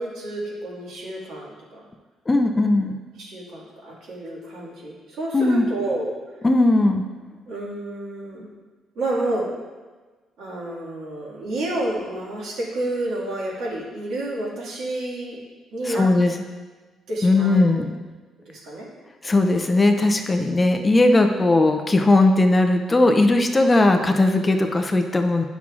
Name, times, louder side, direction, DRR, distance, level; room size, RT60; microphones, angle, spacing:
voice 1, 0.0-1.9 3.2-6.2 7.5-8.5 9.0-9.5 10.4-15.4 15.7-16.1 17.1-17.7 18.5-18.9 19.4-19.5, right 1 dB, 70° right, -4 dB, 1.8 m, -30 dB
voice 2, 2.3-2.9 5.3-5.7 6.4-7.0 15.9-16.4 17.2-17.9 19.2-25.4, left 2 dB, 20° left, 5 dB, 0.4 m, -18 dB
9.6 x 6.1 x 2.4 m, 1.3 s
cardioid pair, 140°, 0 cm